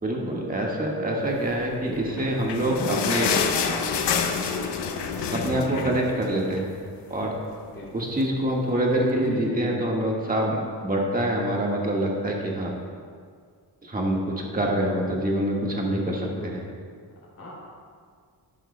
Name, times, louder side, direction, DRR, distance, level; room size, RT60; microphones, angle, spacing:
voice 1, 0.0-3.3 5.3-6.8 7.1-7.4 7.9-12.7 13.8-16.6, right 1 dB, 20° right, -2 dB, 1.6 m, -26 dB
voice 2, 1.8-2.3 2.6-3.1 3.4-3.9 7.7-7.9 9.2-9.8 15.7-16.6 17.4-17.5, left 1 dB, 35° left, -7 dB, 2.7 m, -36 dB
sound 1, 2.0-6.8 7.1-7.2 7.5-7.7 8.4-8.5, left 6 dB, 85° left, 0.8 m, -27 dB
12.5 x 11.0 x 2.2 m, 2.1 s
cardioid pair, 110°, 40 cm